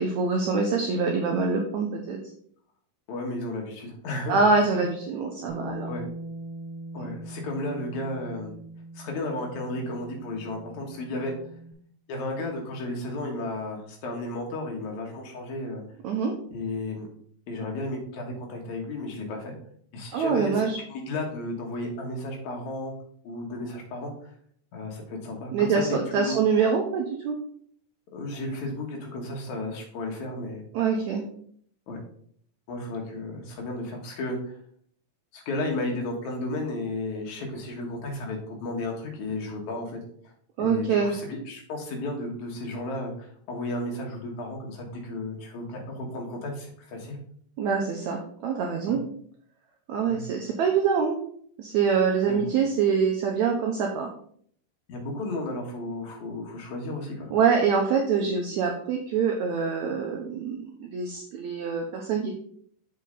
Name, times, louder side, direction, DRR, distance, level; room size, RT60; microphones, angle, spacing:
voice 1, 0.0-2.2 4.3-5.9 16.0-16.3 20.1-20.8 25.5-25.9 26.1-27.3 30.7-31.2 40.6-41.1 47.6-49.0 49.9-51.2 51.6-54.1 57.3-62.3, right 5 dB, 80° right, 2 dB, 1.7 m, -25 dB
voice 2, 3.1-4.8 5.9-6.1 6.9-8.5 8.9-11.3 12.1-15.8 16.5-17.1 17.5-19.5 19.9-22.9 23.2-24.3 24.7-25.8 26.1-26.4 28.1-30.6 31.9-32.0 32.7-34.5 35.3-40.0 40.6-47.2 48.9-49.0 50.1-50.2 52.3-52.4 54.9-57.3, left 2 dB, 60° left, 1 dB, 2.6 m, -33 dB
Bass guitar, 5.5-11.7, right 1 dB, 50° right, 2.3 m, -41 dB
6.7 x 5.5 x 3.9 m, 0.62 s
omnidirectional pair, 4.1 m